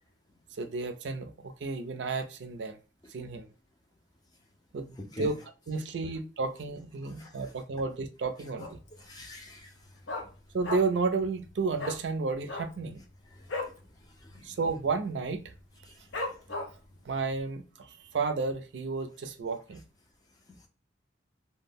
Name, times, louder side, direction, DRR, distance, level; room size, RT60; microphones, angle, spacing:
voice 1, 0.5-2.8 3.1-3.5 4.7-5.4 5.7-8.8 10.5-13.0 14.4-15.5 17.1-19.8, right 4 dB, 70° right, 0.4 m, -32 dB
voice 2, 7.0-7.3 9.0-9.7 13.4-13.5 14.2-14.5 16.2-16.4, left 1 dB, 20° left, 0.5 m, -46 dB
Dog, 8.6-9.0 9.3-9.4 9.7-11.1 11.4-11.5 11.8-12.0 12.4-13.8 14.2-14.3 14.6-15.0 15.4-15.5 16.1-16.9 17.4-17.5, left 2 dB, 80° left, 0.6 m, -36 dB
2.1 x 2.0 x 3.4 m
head